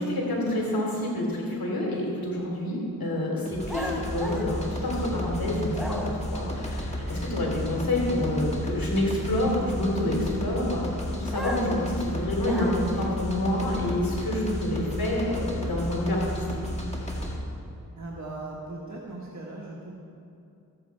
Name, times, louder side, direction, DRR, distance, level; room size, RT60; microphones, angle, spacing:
voice 1, 0.0-6.0 6.3-10.9 11.1-16.4, left 1 dB, 80° left, -2 dB, 3.0 m, -28 dB
sound 1, 3.5-17.4, left 1 dB, 20° left, 1.9 m, -33 dB
sound 2, 3.7-5.3 5.7-6.4 11.3-13.1, equal, ahead, 1.2 m, -36 dB
voice 2, 18.0-20.0, right 2 dB, 50° right, -4 dB, 1.6 m, -38 dB
14.0 x 8.6 x 4.7 m, 2.5 s
cardioid pair, 55°, 35 cm